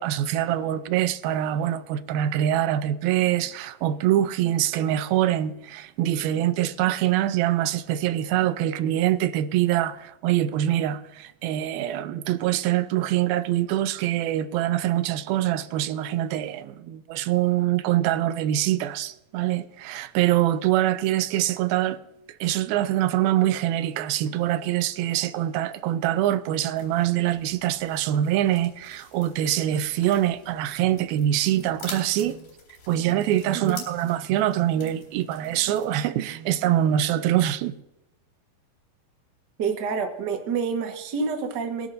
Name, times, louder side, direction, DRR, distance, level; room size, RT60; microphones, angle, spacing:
voice 1, 0.0-22.0 22.4-32.4 32.9-37.7, right 12 dB, 90° right, 2.5 m, -24 dB
sound 1, 26.7-35.8, left 4 dB, 85° left, 5.3 m, -47 dB
voice 2, 39.6-41.9, right 5 dB, 50° right, 1.2 m, -28 dB
22.5 x 11.0 x 2.6 m
omnidirectional pair, 4.1 m